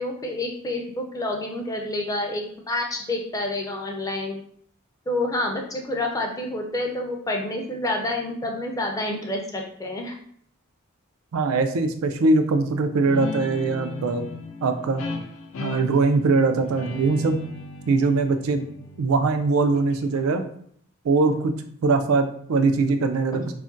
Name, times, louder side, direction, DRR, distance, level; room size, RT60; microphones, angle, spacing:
voice 1, 0.0-4.4 5.1-10.1, left 1 dB, 15° left, 1 dB, 0.4 m, -28 dB
voice 2, 11.3-14.3 14.6-15.0 15.6-17.4 17.9-18.6 19.0-20.4 21.0-21.5 21.8-23.5, right 3 dB, 80° right, 7 dB, 0.4 m, -21 dB
Guitar, 13.0-20.2, left 3 dB, 80° left, 0.5 m, -36 dB
2.4 x 2.1 x 3.8 m, 0.62 s
head